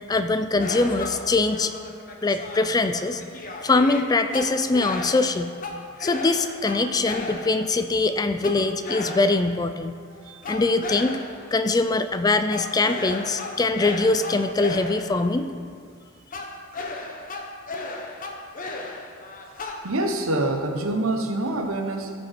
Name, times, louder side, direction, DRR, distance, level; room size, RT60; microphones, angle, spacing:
voice 1, 0.1-1.7 2.2-3.2 3.6-5.5 6.0-9.9 10.5-11.2 11.5-15.5, left 3 dB, 20° left, 9 dB, 0.3 m, -22 dB
sound 1, 0.6-7.8 8.4-9.6 10.4-11.5 12.5-15.3 16.3-19.8, left 2 dB, 40° left, 0.9 m, -35 dB
voice 2, 19.8-22.1, right 2 dB, 90° right, 4 dB, 1.1 m, -26 dB
15.0 x 5.3 x 4.4 m, 2.2 s
head